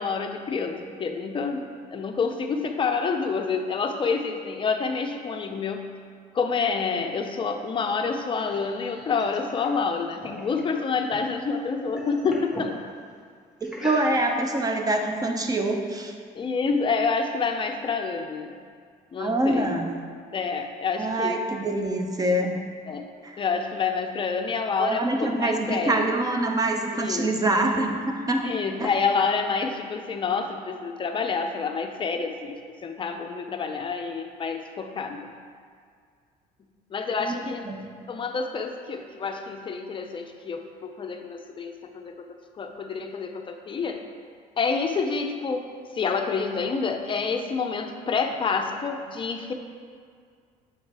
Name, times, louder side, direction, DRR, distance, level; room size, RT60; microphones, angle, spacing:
voice 1, 0.0-5.8 6.3-12.8 16.4-18.6 19.1-19.7 20.3-21.4 22.9-23.1 23.4-26.1 26.9-27.3 28.4-35.2 36.9-37.7 38.1-44.0 44.6-45.7 46.0-49.5, left 5 dB, 30° left, 5 dB, 0.5 m, -28 dB
sound 1, 8.0-11.4 11.7-12.7 13.6-14.5, left 1 dB, 5° right, 1.2 m, -40 dB
voice 2, 13.6-16.1 19.2-19.9 21.0-22.6 23.2-23.4 24.8-28.4 28.8-28.9 37.2-37.4 37.7-37.9, right 2 dB, 20° right, 3 dB, 0.6 m, -25 dB
7.3 x 3.2 x 4.6 m, 2.1 s
cardioid pair, 110°, 17 cm